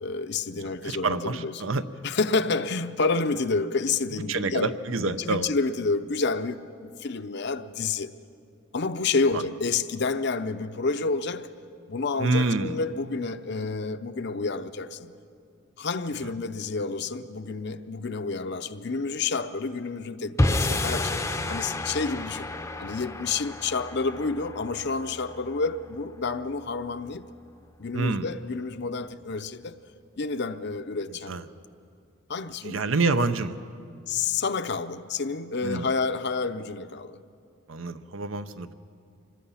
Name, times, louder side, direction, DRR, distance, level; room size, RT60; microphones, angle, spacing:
voice 1, 0.0-1.7 2.0-8.1 8.7-11.5 11.9-15.1 15.8-22.5 22.8-27.2 27.8-29.8 30.2-31.3 32.3-32.8 34.1-37.1, left 4 dB, 55° left, 0.7 m, -29 dB
voice 2, 0.6-1.8 4.3-5.5 9.3-9.4 12.2-12.8 16.2-16.3 27.9-28.3 31.3-31.5 32.6-33.6 35.6-35.9 37.7-38.7, right 3 dB, 75° right, 0.8 m, -27 dB
sound 1, 20.4-26.8, left 2 dB, 15° left, 0.6 m, -30 dB
25.5 x 21.0 x 5.7 m
head